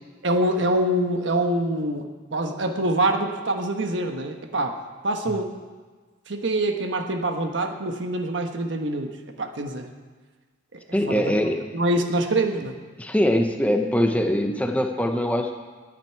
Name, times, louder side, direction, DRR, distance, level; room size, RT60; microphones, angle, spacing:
voice 1, 0.2-4.8 5.0-5.5 6.3-9.9 10.7-10.8 11.1-11.3 11.7-12.8, right 1 dB, 70° right, 5 dB, 1.2 m, -25 dB
voice 2, 10.9-11.6 13.0-15.6, equal, 5° left, 4 dB, 0.7 m, -22 dB
19.5 x 9.2 x 4.6 m, 1.4 s
head